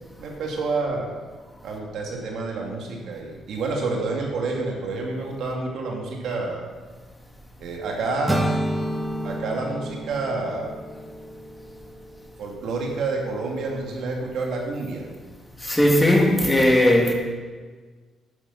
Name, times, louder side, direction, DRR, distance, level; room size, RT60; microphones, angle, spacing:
voice 1, 0.2-1.1 1.6-6.7 7.6-8.4 9.2-10.7 12.4-15.1, right 3 dB, 75° right, 2.3 m, -28 dB
sound 1, 8.3-12.3, equal, 10° right, 1.2 m, -29 dB
voice 2, 15.6-17.1, left 1 dB, 10° left, 2.2 m, -17 dB
11.5 x 9.6 x 4.2 m
cardioid pair, 90°, 0 cm